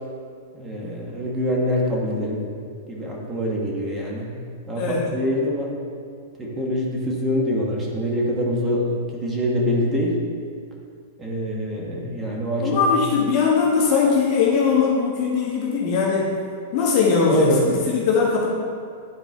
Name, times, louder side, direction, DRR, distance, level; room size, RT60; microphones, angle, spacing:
voice 1, 0.5-2.4 2.9-4.3 4.7-5.7 6.4-10.2 11.2-12.9 17.3-17.6, equal, 15° right, -2 dB, 1.3 m, -25 dB
voice 2, 4.8-5.1 12.6-16.3 16.7-18.5, left 5 dB, 40° left, -5 dB, 1.5 m, -20 dB
10.5 x 4.3 x 4.5 m, 2.2 s
supercardioid pair, 160°, 0 cm